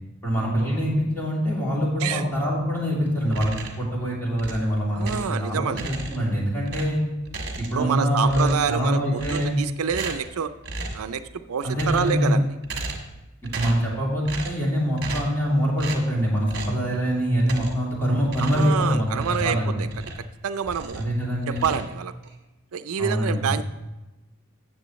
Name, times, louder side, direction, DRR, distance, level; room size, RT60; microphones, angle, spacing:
voice 1, 0.2-7.0 7.6-9.6 11.6-12.4 13.4-19.9 20.9-21.7 23.0-23.6, equal, 10° left, -5 dB, 2.9 m, -24 dB
sound 1, 3.3-3.9 4.4-5.4 5.7-6.3 6.7-7.9 8.2-8.8 9.2-9.6 9.9-10.3 10.6-11.1 11.6-12.3 12.6-13.2 13.4-13.9 14.3-14.7 15.0-15.4 15.8-16.1 16.5-16.8 17.4-17.9 18.3-20.3 20.6-21.1 21.5-22.3, right 3 dB, 50° right, 1.5 m, -35 dB
voice 2, 4.9-5.9 7.7-10.5 10.9-12.5 18.4-19.9 20.2-21.0 21.6-22.1 22.7-23.6, right 7 dB, 90° right, 11 dB, 0.5 m, -27 dB
13.5 x 7.6 x 3.1 m, 1.1 s
head